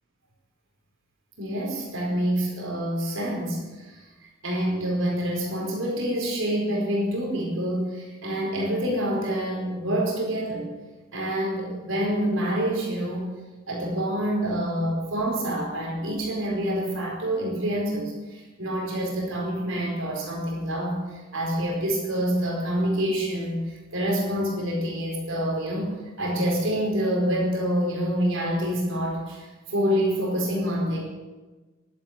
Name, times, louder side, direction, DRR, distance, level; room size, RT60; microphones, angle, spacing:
voice 1, 1.4-10.7 11.1-13.3 13.7-31.0, equal, 65° right, -2 dB, 4.7 m, -27 dB
12.0 x 12.0 x 9.2 m, 1.3 s
head